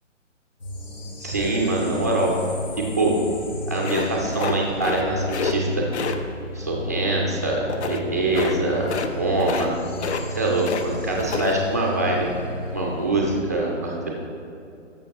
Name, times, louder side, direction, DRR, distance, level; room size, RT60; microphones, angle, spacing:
sound 1, 0.6-13.4, left 1 dB, 80° left, 1.9 m, -33 dB
voice 1, 1.2-2.3 2.8-3.1 3.7-5.9 6.5-9.7 10.3-12.3 12.7-14.1, right 2 dB, 15° right, -2 dB, 0.4 m, -24 dB
sound 2, 3.8-5.0 5.3-5.5 5.9-6.2 7.7-8.0 8.3-8.6 8.8-9.1 9.4-9.7 10.0-10.9 11.2-11.5, left 5 dB, 60° left, 0.7 m, -28 dB
13.0 x 6.8 x 2.9 m, 2.7 s
figure-of-eight pair, 150°, 38 cm